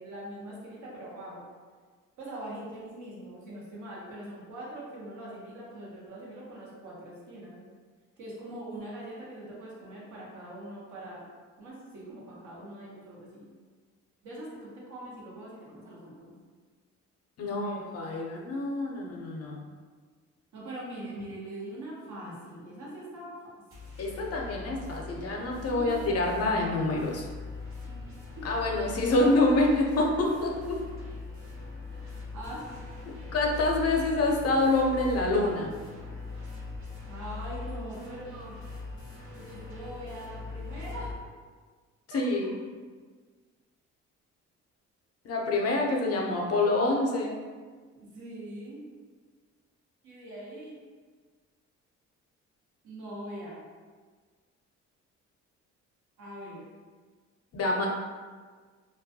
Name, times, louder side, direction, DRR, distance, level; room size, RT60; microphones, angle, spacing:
voice 1, 0.0-1.4 2.2-7.6 8.2-11.2 11.6-13.5 14.2-16.3 17.6-18.3 20.5-23.4 25.7-26.1 27.9-28.5 30.2-30.3 32.0-32.6 36.3-36.4 37.1-38.6 39.3-41.1 42.1-42.2 48.0-48.8 50.0-50.8 52.8-53.6 56.2-56.6, right 1 dB, 70° right, -5 dB, 0.9 m, -42 dB
voice 2, 17.4-19.6 24.0-27.2 28.4-30.8 33.3-35.7 42.1-42.5 45.2-47.3 57.5-57.9, left 2 dB, 55° left, -1 dB, 0.5 m, -26 dB
sound 1, 23.7-41.2, left 3 dB, 45° right, 0.9 m, -41 dB
2.3 x 2.1 x 2.7 m, 1.5 s
cardioid pair, 90°, 30 cm